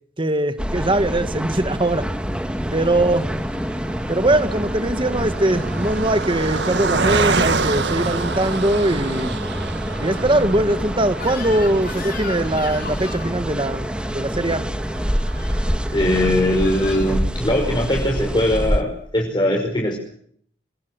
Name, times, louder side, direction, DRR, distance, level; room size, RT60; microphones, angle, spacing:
voice 1, 0.2-2.1 2.7-3.3 4.1-9.4 10.0-14.6, right 1 dB, 30° right, 10 dB, 1.9 m, -21 dB
sound 1, 0.6-18.8, equal, 5° right, 1.7 m, -26 dB
Car passing by, 1.8-17.3 17.8-17.9 18.1-18.3, right 4 dB, 75° right, 1.6 m, -29 dB
Crying sobbing / Screech, 11.2-13.4 15.3-15.6 16.2-17.2, left 5 dB, 55° left, 6.1 m, -36 dB
voice 2, 15.9-20.0, left 1 dB, 25° left, 0 dB, 5.6 m, -20 dB
28.5 x 20.5 x 7.9 m, 0.64 s
head